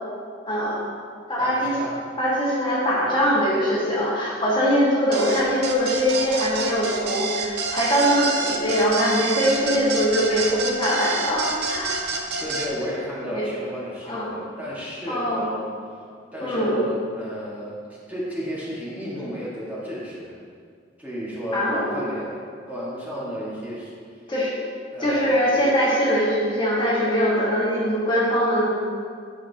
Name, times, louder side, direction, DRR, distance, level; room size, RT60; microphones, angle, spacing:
voice 1, 0.5-0.9 1.3-1.8 2.2-12.3 13.3-13.4 14.1-14.3 15.1-15.5 16.4-16.8 21.5-22.1 24.3-24.5 25.0-28.7, equal, 25° left, -7 dB, 1.7 m, -22 dB
voice 2, 1.4-2.0 12.4-15.7 16.3-17.8 18.1-20.4 21.0-22.4 22.7-23.9 24.9-25.4, equal, 10° right, -8 dB, 1.6 m, -32 dB
sound 1, 5.1-12.7, right 3 dB, 60° right, 0.7 m, -28 dB
11.0 x 6.1 x 2.8 m, 2.1 s
head